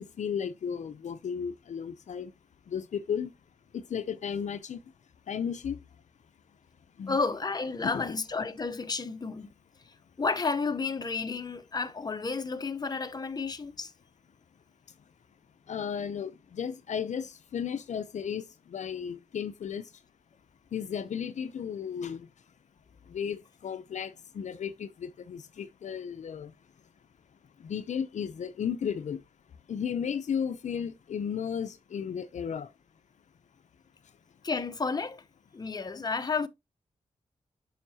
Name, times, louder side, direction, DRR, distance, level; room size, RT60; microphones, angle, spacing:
voice 1, 0.0-2.3 2.7-3.3 3.7-4.8 5.3-5.8 7.0-7.2 7.8-8.1 15.7-18.4 18.7-19.8 20.7-22.3 23.1-26.5 27.6-29.2 29.7-32.7, left 7 dB, 70° left, 0.6 m, -34 dB
voice 2, 7.1-9.5 10.2-13.9 34.4-35.2 35.5-36.5, left 4 dB, 30° left, 0.8 m, -31 dB
7.4 x 5.7 x 2.8 m
cardioid pair, 50°, 13 cm